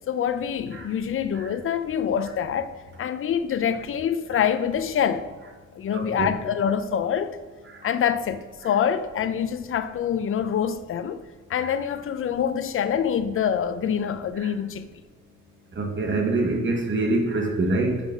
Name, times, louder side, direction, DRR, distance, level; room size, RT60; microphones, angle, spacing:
voice 1, 0.1-5.3 5.7-7.3 7.8-11.2 11.5-14.9, left 8 dB, 45° left, 0.5 m, -25 dB
voice 2, 5.9-6.3 14.4-14.5 15.8-18.0, right 2 dB, 40° right, 1.3 m, -25 dB
6.2 x 4.3 x 5.3 m
cardioid pair, 90°, 30 cm